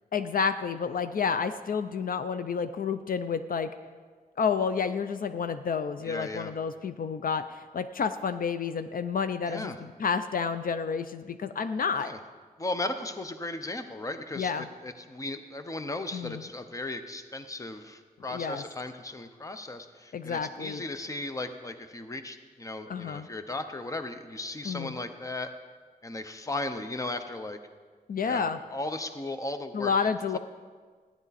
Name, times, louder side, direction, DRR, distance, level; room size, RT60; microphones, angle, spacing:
voice 1, 0.1-3.7 4.4-12.1 14.4-14.7 16.1-16.4 18.3-18.6 20.1-20.8 22.9-23.3 24.6-24.9 28.1-28.6 29.7-30.4, left 6 dB, 65° left, 10 dB, 0.4 m, -30 dB
voice 2, 6.0-6.5 9.5-9.8 12.0-12.2 12.6-25.5 26.0-27.6 28.2-29.9 30.3-30.4, left 2 dB, 20° left, 8 dB, 0.7 m, -36 dB
15.5 x 10.0 x 4.1 m, 1.5 s
wide cardioid pair, 160°, 16 cm